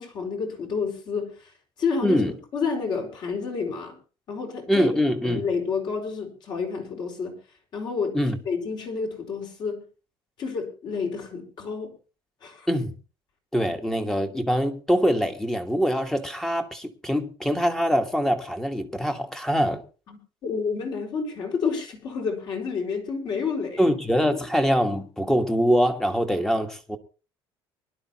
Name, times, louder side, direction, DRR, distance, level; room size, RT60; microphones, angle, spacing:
voice 1, 0.0-1.5 1.8-4.0 4.3-4.9 5.2-7.4 7.7-8.2 8.4-9.8 10.4-11.9 12.4-12.7 20.1-23.8, left 5 dB, 50° left, 4.5 m, -29 dB
voice 2, 2.0-2.3 4.7-5.4 8.1-8.4 12.7-13.0 13.5-19.8 23.8-27.0, equal, 5° left, 1.4 m, -23 dB
24.0 x 11.5 x 2.9 m
cardioid pair, 150°, 10 cm